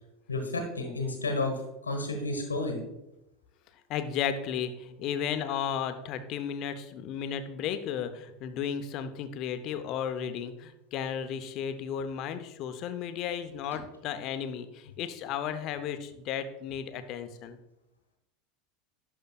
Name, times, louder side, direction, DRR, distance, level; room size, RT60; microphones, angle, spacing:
voice 1, 0.3-2.8 13.7-13.8, left 2 dB, 90° left, 4 dB, 1.2 m, -31 dB
voice 2, 3.9-17.6, left 8 dB, 50° left, 10 dB, 0.6 m, -34 dB
11.5 x 5.4 x 2.3 m, 0.91 s
figure-of-eight pair, 80°, 0 cm